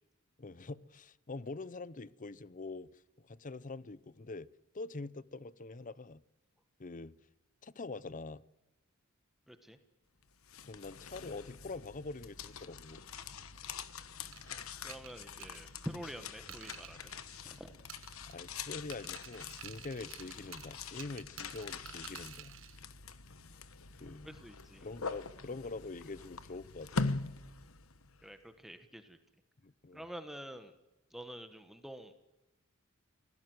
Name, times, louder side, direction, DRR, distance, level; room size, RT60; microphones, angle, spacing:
voice 1, 0.4-4.5 4.7-6.2 6.8-7.2 7.6-8.4 10.6-13.0 18.3-22.6 24.0-24.3 24.8-27.1 29.6-30.0, left 3 dB, 40° left, 0.7 m, -45 dB
voice 2, 9.5-9.8 14.8-17.1 17.4-17.8 24.2-24.8 28.2-29.2 29.9-30.7 31.1-32.1, equal, ahead, 1.3 m, -47 dB
sound 1, 10.2-28.2, left 4 dB, 85° left, 1.2 m, -44 dB
sound 2, 14.3-17.6 17.9-18.6 18.9-22.8, right 11 dB, 65° right, 1.4 m, -52 dB
24.0 x 17.0 x 8.0 m
head